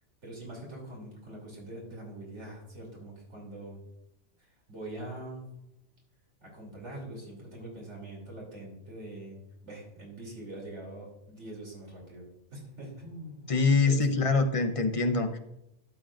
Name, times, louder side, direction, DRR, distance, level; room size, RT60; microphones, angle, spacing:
voice 1, 0.2-3.8 4.4-5.5 6.4-14.2, right 1 dB, 75° right, -2 dB, 3.4 m, -44 dB
voice 2, 13.5-15.4, left 3 dB, 35° left, 7 dB, 0.7 m, -24 dB
12.0 x 7.5 x 2.5 m, 0.86 s
omnidirectional pair, 1.2 m